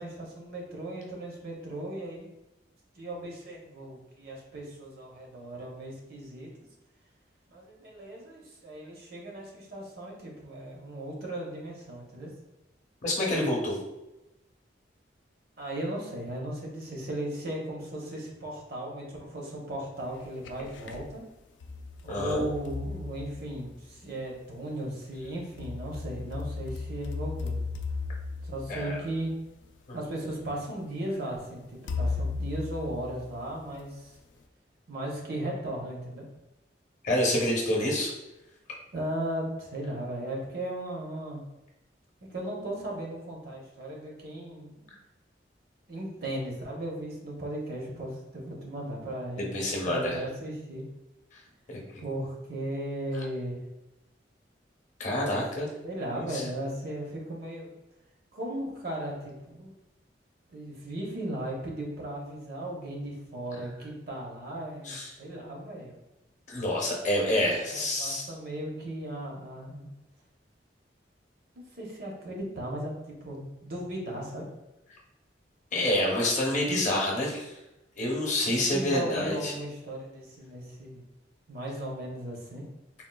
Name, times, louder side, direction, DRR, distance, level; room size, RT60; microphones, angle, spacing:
voice 1, 0.0-2.3 3.0-6.5 7.5-12.3 15.6-21.2 22.0-27.5 28.4-29.3 29.9-34.1 34.9-36.2 38.9-41.4 42.2-44.9 45.9-49.5 49.8-50.8 52.0-53.6 55.8-57.7 58.3-59.7 60.5-66.0 67.7-69.9 71.5-74.5 78.5-81.0 81.5-82.6, right 1 dB, 60° right, -1 dB, 0.7 m, -36 dB
voice 2, 13.0-13.8 22.1-22.4 28.7-29.0 29.9-30.0 37.0-38.1 49.4-50.2 55.0-55.7 56.3-56.4 64.8-65.1 66.5-68.3 75.7-77.5 78.0-79.5, left 1 dB, 45° left, -2 dB, 0.7 m, -27 dB
sound 1, 20.1-21.1 21.6-24.0 25.2-29.6 30.4-30.5 31.9-33.8, left 4 dB, 80° left, 0.3 m, -36 dB
3.7 x 2.3 x 2.2 m, 0.96 s
head